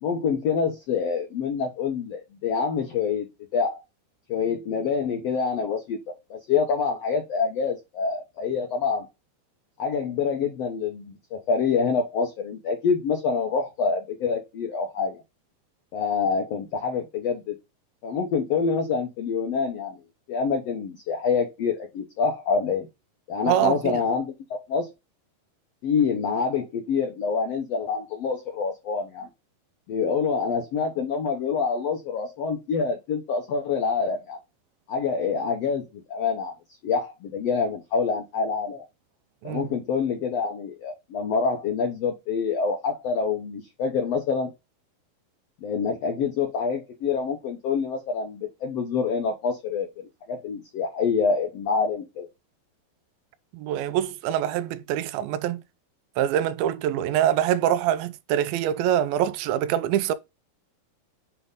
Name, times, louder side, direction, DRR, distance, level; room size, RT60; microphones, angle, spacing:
voice 1, 0.0-3.3 3.5-3.8 4.3-6.0 6.3-9.1 9.8-15.2 15.9-17.5 18.0-20.0 20.3-22.9 23.3-24.3 24.7-24.9 25.8-29.3 29.9-34.4 34.9-36.5 36.8-38.8 39.4-44.5 45.6-49.9 50.3-52.3, left 5 dB, 75° left, 1.4 m, -26 dB
voice 2, 23.5-24.0 39.4-39.6 53.5-55.6 56.2-60.1, right 11 dB, 85° right, 2.5 m, -24 dB
8.0 x 3.5 x 3.6 m
omnidirectional pair, 4.1 m